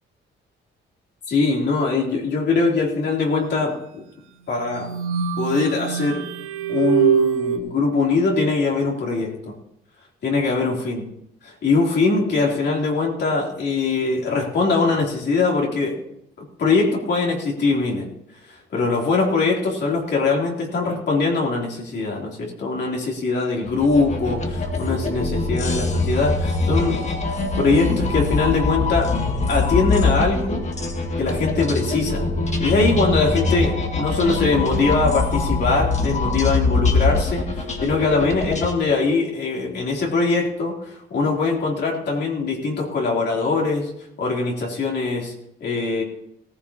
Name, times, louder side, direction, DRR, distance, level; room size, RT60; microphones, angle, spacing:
voice 1, 1.3-4.0 4.5-4.9 5.4-6.3 6.7-9.5 10.2-11.0 11.4-16.0 16.4-18.1 18.5-29.1 29.5-30.7 31.2-32.3 32.6-43.9 44.2-45.3 45.6-46.0, left 3 dB, 60° left, -2 dB, 3.3 m, -22 dB
sound 1, 4.6-7.6, right 9 dB, 90° right, 1.2 m, -23 dB
sound 2, 23.6-38.7, left 3 dB, 35° left, 1.9 m, -23 dB
17.5 x 15.0 x 2.9 m, 0.79 s
cardioid pair, 90°, 20 cm